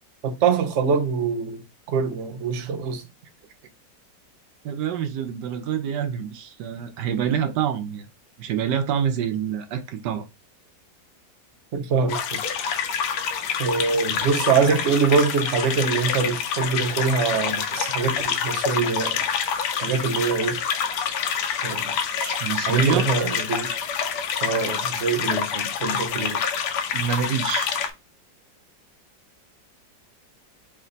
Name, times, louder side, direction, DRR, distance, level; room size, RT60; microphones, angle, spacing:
voice 1, 0.2-3.1 11.7-12.4 13.6-19.2 19.8-20.6 21.6-21.9 22.7-23.7 24.4-26.4, right 5 dB, 60° right, 0.8 m, -24 dB
voice 2, 4.6-8.1 8.4-10.3 22.2-23.1 26.9-27.7, right 8 dB, 75° right, 1.2 m, -26 dB
sound 1, 12.1-27.9, left 7 dB, 75° left, 1.2 m, -27 dB
3.3 x 3.2 x 3.9 m
omnidirectional pair, 1.9 m